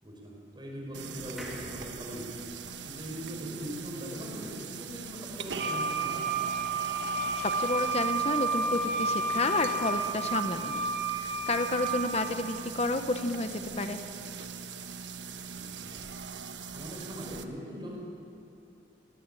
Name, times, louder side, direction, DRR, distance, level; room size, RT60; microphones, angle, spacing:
voice 1, 0.0-2.3 2.8-6.3 11.9-12.0 15.5-16.2 16.7-18.0, equal, 25° right, -1 dB, 5.4 m, -41 dB
sound 1, 0.9-17.4, right 6 dB, 85° right, 1.2 m, -41 dB
sound 2, 1.4-4.8 5.2-5.3 5.5-5.6, equal, ahead, 2.8 m, -50 dB
Wind instrument woodwind instrument, 5.6-12.3, right 4 dB, 65° right, 3.5 m, -31 dB
voice 2, 7.4-14.0, left 2 dB, 35° left, 8 dB, 0.9 m, -31 dB
21.0 x 18.5 x 9.0 m, 3.0 s
head